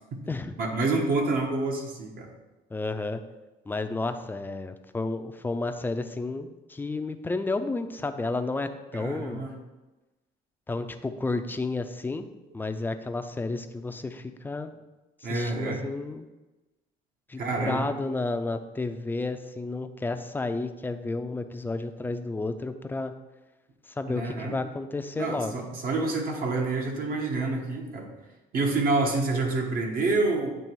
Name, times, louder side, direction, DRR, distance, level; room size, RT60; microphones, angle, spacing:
voice 1, 0.6-2.3 8.9-9.5 15.2-15.9 17.4-17.9 24.1-24.6 25.1-28.1 28.5-30.6, right 3 dB, 60° right, 1 dB, 1.3 m, -28 dB
voice 2, 2.7-3.2 3.7-9.5 10.7-12.3 12.5-14.7 15.3-16.3 17.3-23.1 24.0-25.6, left 3 dB, 10° left, 8 dB, 0.4 m, -31 dB
8.7 x 3.0 x 4.6 m, 1.1 s
cardioid pair, 110°, 17 cm